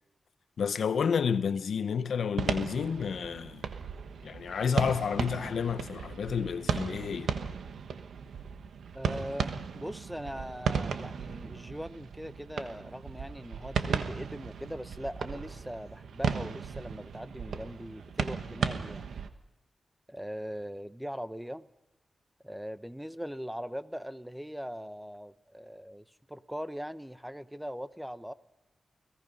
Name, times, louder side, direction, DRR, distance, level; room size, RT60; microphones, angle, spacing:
voice 1, 0.6-3.7 4.2-7.3, left 6 dB, 80° left, 0.9 m, -30 dB
sound 1, 2.4-19.3, right 6 dB, 90° right, 1.3 m, -35 dB
voice 2, 8.9-19.1 20.1-21.7 22.4-28.3, equal, 5° right, 1.2 m, -40 dB
30.0 x 18.5 x 5.5 m
cardioid pair, 60°, 0 cm